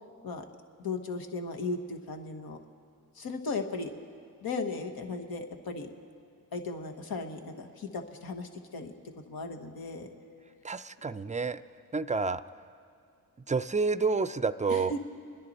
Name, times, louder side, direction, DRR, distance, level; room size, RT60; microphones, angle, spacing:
voice 1, 0.8-2.6 3.2-3.9 4.4-5.9 6.5-8.9 9.3-10.1 14.7-15.0, left 3 dB, 80° left, 4 dB, 1.2 m, -36 dB
voice 2, 10.6-11.6 11.9-12.4 13.5-14.9, right 4 dB, 20° right, 14 dB, 0.4 m, -29 dB
26.0 x 10.5 x 4.2 m, 2.2 s
cardioid pair, 50°, 36 cm